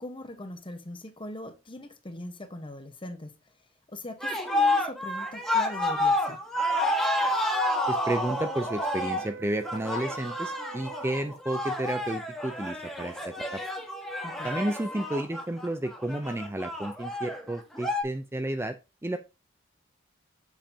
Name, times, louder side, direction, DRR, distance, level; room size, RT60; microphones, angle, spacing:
voice 1, 0.0-3.3 3.9-6.4 14.2-14.5, left 1 dB, 25° left, 1.1 m, -41 dB
sound 1, 4.2-18.0, left 1 dB, 5° left, 1.7 m, -29 dB
sound 2, 7.5-11.4, right 6 dB, 60° right, 1.3 m, -44 dB
voice 2, 7.9-13.6 14.4-18.8 19.0-19.2, right 1 dB, 15° right, 0.5 m, -32 dB
7.3 x 7.3 x 2.8 m
head